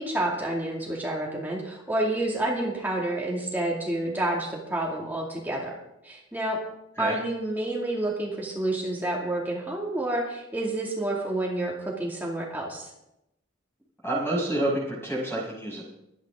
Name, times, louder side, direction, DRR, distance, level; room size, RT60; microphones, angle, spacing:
voice 1, 0.0-5.7 6.0-6.6 7.0-12.9, right 1 dB, 10° right, -3 dB, 2.4 m, -29 dB
voice 2, 14.0-15.8, right 1 dB, 10° left, -4 dB, 6.1 m, -28 dB
23.0 x 9.6 x 3.7 m, 0.86 s
head